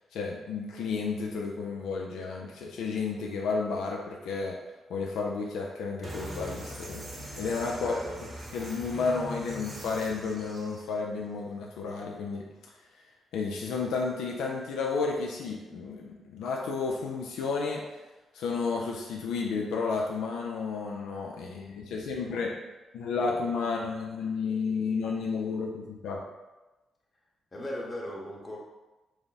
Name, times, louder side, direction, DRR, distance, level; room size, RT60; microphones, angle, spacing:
voice 1, 0.1-4.6 4.9-7.1 7.4-7.9 8.5-12.5 13.3-17.8 18.3-22.6 22.9-26.3, left 4 dB, 85° left, -1 dB, 0.4 m, -32 dB
sound 1, 6.0-10.8, right 1 dB, 40° right, 0.9 m, -41 dB
voice 2, 7.7-8.2 27.5-28.6, left 1 dB, 30° left, -3 dB, 1.0 m, -37 dB
3.5 x 2.0 x 4.0 m, 1.1 s
cardioid pair, 80°, 0 cm